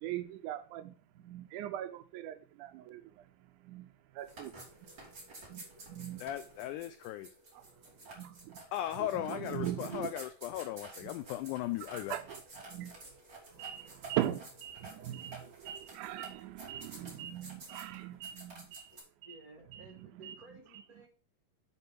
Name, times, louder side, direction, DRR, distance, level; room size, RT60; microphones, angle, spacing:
voice 1, 0.0-4.5 5.5-6.2 7.5-7.6 8.1-8.6 9.0-10.1 11.0-11.1 11.9-12.4 12.7-12.9 13.5-19.4 19.7-20.4, right 12 dB, 80° right, 1.9 m, -41 dB
sound 1, 4.2-19.0, right 2 dB, 35° right, 3.7 m, -51 dB
voice 2, 6.2-7.3 8.7-12.2, left 13 dB, 80° left, 1.9 m, -37 dB
voice 3, 19.2-21.1, right 2 dB, 60° right, 0.9 m, -55 dB
9.7 x 4.3 x 5.2 m
omnidirectional pair, 4.0 m